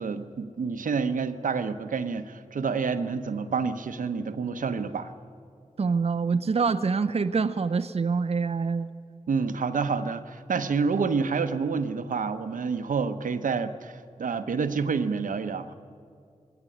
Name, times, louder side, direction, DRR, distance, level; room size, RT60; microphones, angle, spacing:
voice 1, 0.0-5.1 9.3-15.7, right 5 dB, 85° right, 8 dB, 1.0 m, -28 dB
voice 2, 5.8-8.9, right 5 dB, 50° right, 8 dB, 0.6 m, -25 dB
20.5 x 17.0 x 10.0 m, 2.2 s
cardioid pair, 65°, 13 cm